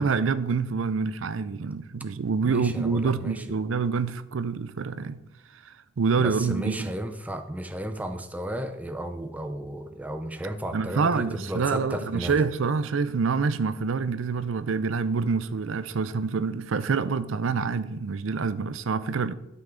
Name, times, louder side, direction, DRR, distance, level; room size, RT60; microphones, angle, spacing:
voice 1, 0.0-5.2 5.5-6.9 10.7-19.3, right 5 dB, 75° right, 0.5 m, -26 dB
voice 2, 2.4-3.4 6.2-12.4, right 1 dB, 10° right, 0.6 m, -34 dB
12.0 x 5.8 x 3.8 m
head